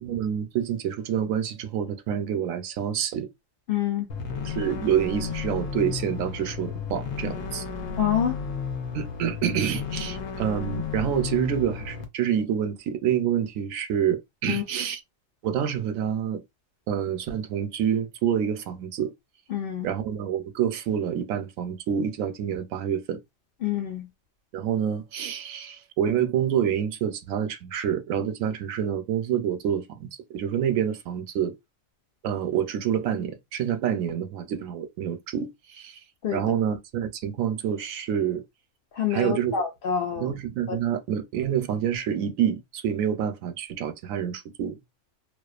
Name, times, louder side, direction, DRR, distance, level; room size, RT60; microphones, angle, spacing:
voice 1, 0.0-3.3 4.4-7.7 8.9-15.0 15.4-16.4 16.9-19.1 19.8-23.2 24.5-31.5 32.2-36.0 36.3-38.4 39.1-39.6 40.2-44.8, right 9 dB, 85° right, 1.0 m, -27 dB
voice 2, 3.7-4.1 8.0-8.3 14.5-14.6 19.5-19.9 23.6-24.1 36.2-36.4 38.9-40.3 40.7-40.8, left 8 dB, 60° left, 0.6 m, -26 dB
sound 1, 4.1-12.0, left 6 dB, 80° left, 1.0 m, -33 dB
2.4 x 2.3 x 2.3 m
omnidirectional pair, 1.3 m